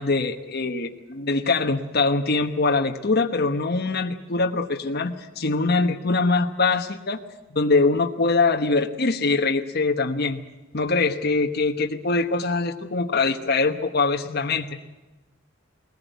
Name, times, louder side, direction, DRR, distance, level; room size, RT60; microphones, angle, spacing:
voice 1, 0.0-7.2 7.5-10.4 10.7-14.7, left 3 dB, 50° left, 4 dB, 1.2 m, -23 dB
20.5 x 19.5 x 9.3 m, 1.1 s
head